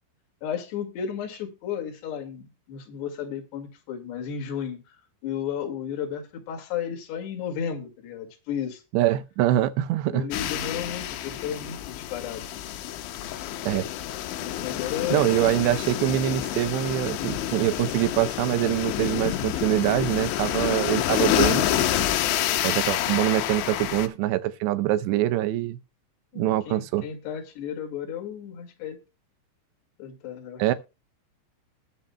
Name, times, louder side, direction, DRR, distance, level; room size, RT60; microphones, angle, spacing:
voice 1, 0.4-5.0 5.2-8.8 10.1-12.5 14.6-15.5 22.4-23.1 26.3-29.0 30.0-30.8, left 8 dB, 70° left, 4.0 m, -34 dB
voice 2, 8.9-10.3 13.7-13.9 15.1-21.7 22.6-25.8 26.4-27.1 30.6-30.7, right 14 dB, 80° right, 2.8 m, -24 dB
sound 1, 10.3-24.1, left 12 dB, 90° left, 3.4 m, -28 dB
20.0 x 7.0 x 2.2 m
omnidirectional pair, 5.2 m